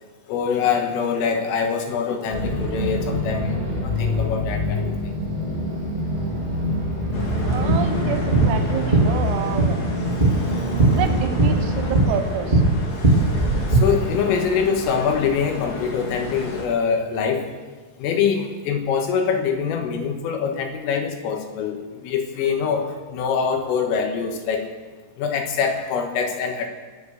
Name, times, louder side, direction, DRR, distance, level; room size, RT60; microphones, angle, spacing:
voice 1, 0.3-5.2 7.2-7.3 10.3-10.4 13.7-17.4 18.0-24.6 25.2-26.7, left 6 dB, 80° left, 4 dB, 4.1 m, -24 dB
sound 1, 2.3-11.9, left 1 dB, 15° right, 1.7 m, -26 dB
sound 2, 7.1-16.6, left 2 dB, 45° left, 2.5 m, -33 dB
sound 3, 7.2-13.8, right 2 dB, 55° right, 0.5 m, -20 dB
voice 2, 7.4-9.8 10.8-12.6, right 8 dB, 85° right, 7 dB, 4.0 m, -28 dB
23.5 x 8.1 x 6.5 m, 1.4 s
omnidirectional pair, 6.0 m